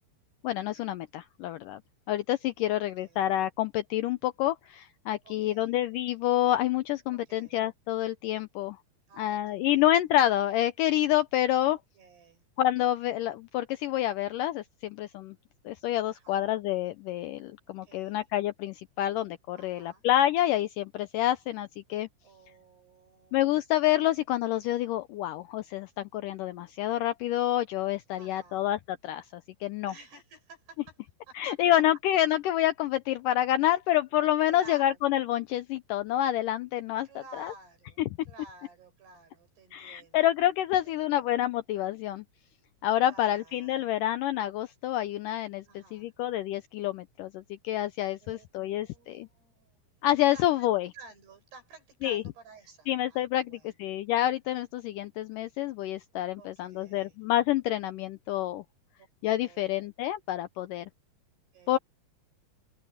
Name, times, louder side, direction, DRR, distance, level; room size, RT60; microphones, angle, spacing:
voice 1, 0.4-1.8 2.1-8.8 9.2-11.8 12.6-15.3 15.7-22.1 23.3-29.9 31.4-37.1 37.4-37.5 38.0-38.1 39.7-42.2 42.8-49.3 50.0-50.9 52.0-52.2 52.9-58.6 59.2-60.9 61.7-61.8, left 13 dB, 90° left, 1.9 m, -28 dB
voice 2, 2.6-3.3 5.2-5.8 7.1-7.6 9.1-10.1 11.7-12.4 16.1-16.5 17.8-18.3 19.6-20.0 22.2-23.6 24.0-24.2 28.1-28.6 29.9-31.0 31.3-31.6 34.5-35.0 37.1-38.0 38.3-40.2 40.8-41.3 43.0-44.0 45.7-46.1 48.2-48.5 48.8-49.8 50.3-50.7 50.9-53.8 56.4-57.2 59.0-59.1 59.4-59.9 61.5-61.8, right 3 dB, 85° right, 9.0 m, -53 dB
open air
omnidirectional pair, 4.6 m